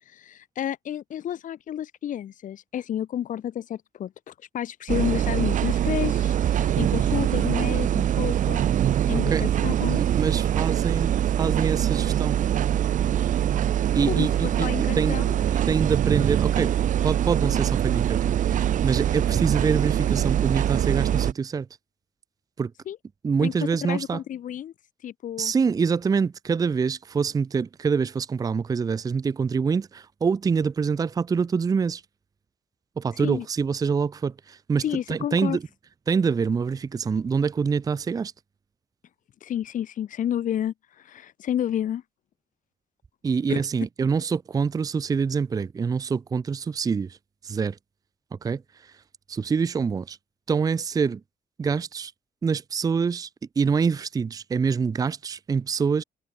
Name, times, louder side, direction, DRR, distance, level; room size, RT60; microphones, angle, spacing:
voice 1, 0.1-8.7 9.1-10.0 14.1-14.3 14.6-15.4 22.9-23.0 23.4-23.5 23.9-24.7 25.0-25.5 33.2-33.4 34.8-35.6 39.4-42.0 43.5-43.6, left 10 dB, 60° left, 1.2 m, -30 dB
sound 1, 4.9-21.3, right 10 dB, 60° right, 0.9 m, -23 dB
voice 2, 9.9-11.1 11.4-12.4 13.9-14.7 14.9-15.2 15.5-16.7 17.0-21.7 22.6-22.7 23.2-24.2 25.4-32.0 33.0-35.6 36.1-38.3 43.2-47.2 47.4-47.8 48.3-48.9 49.3-50.2 50.5-51.2 51.6-52.1 52.4-53.3 53.6-56.0, right 5 dB, 25° right, 0.6 m, -25 dB
wide cardioid pair, 180°, 15 cm